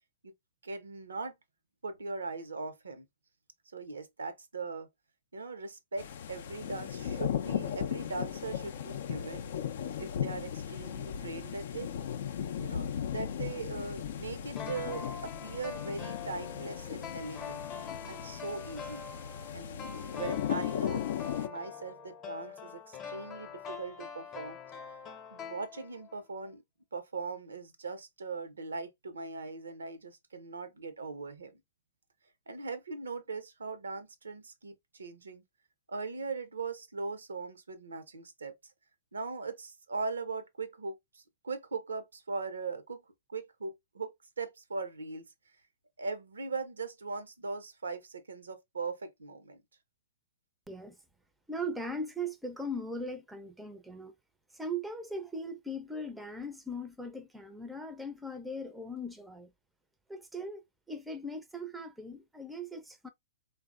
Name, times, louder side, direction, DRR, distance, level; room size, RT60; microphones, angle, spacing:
voice 1, 0.6-1.3 1.8-3.1 3.7-4.9 5.3-9.4 9.8-11.9 12.6-17.7 18.1-19.0 19.5-24.6 25.3-26.6 26.9-31.6 32.5-35.4 35.9-38.5 39.1-43.0 43.3-44.1 44.4-45.3 46.0-49.6, right 4 dB, 90° right, 0.5 m, -40 dB
sound 1, 6.0-21.5, left 9 dB, 65° left, 0.4 m, -37 dB
sound 2, 14.6-26.2 26.5-26.6, left 7 dB, 30° left, 0.7 m, -44 dB
voice 2, 50.7-51.0 51.5-54.1 54.5-59.5 60.1-63.1, equal, 5° right, 0.4 m, -39 dB
3.4 x 2.0 x 2.3 m
hypercardioid pair, 115°, 0 cm